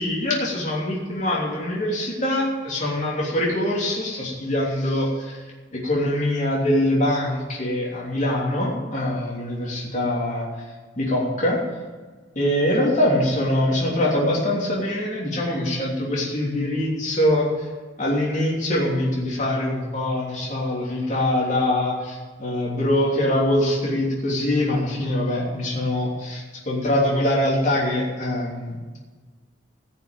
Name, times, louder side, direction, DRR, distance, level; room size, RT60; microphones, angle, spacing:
voice 1, 0.0-5.4 5.7-10.5 11.0-11.6 12.3-17.5 18.0-28.8, left 1 dB, 40° left, -4 dB, 3.2 m, -23 dB
15.5 x 6.9 x 9.0 m, 1.4 s
head